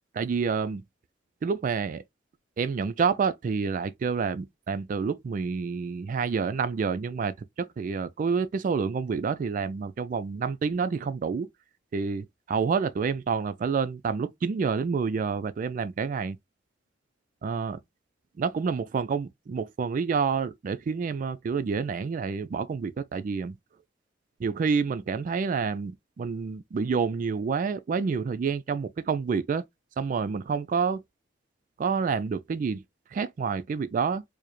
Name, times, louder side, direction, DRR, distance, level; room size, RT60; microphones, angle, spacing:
voice 1, 0.1-0.8 1.4-2.0 2.6-11.5 11.9-16.4 17.4-17.8 18.4-23.5 24.4-29.6 30.0-31.0 31.8-32.8 33.1-34.2, right 5 dB, 45° right, 0.3 m, -28 dB
4.7 x 2.1 x 3.0 m
head